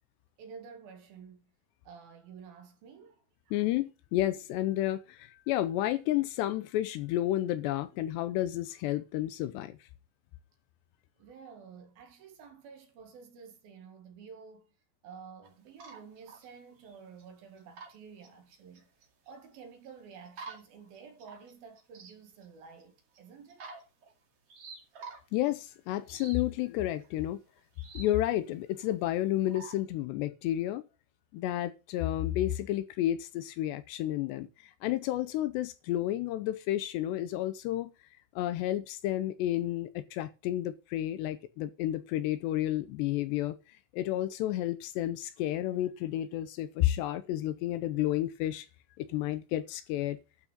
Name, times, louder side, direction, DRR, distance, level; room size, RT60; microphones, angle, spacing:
voice 1, 0.4-1.5 1.8-3.6 11.2-14.7 15.0-18.9 19.2-23.7, right 6 dB, 60° right, 3.3 m, -51 dB
voice 2, 3.5-9.8 25.3-27.4 27.9-30.8 31.3-34.5 34.8-37.9 38.4-43.6 43.9-48.7 49.0-50.2, left 14 dB, 80° left, 2.8 m, -31 dB
sound 1, 15.4-18.0 18.2-19.6 20.3-22.1 22.4-22.5 22.8-22.9 23.1-23.2 23.5-24.1 24.5-25.4 26.1-26.4 26.9-27.1 27.6-28.1 28.8-28.9 29.5-29.8, right 4 dB, 40° right, 2.6 m, -48 dB
12.0 x 6.3 x 6.5 m
omnidirectional pair, 5.2 m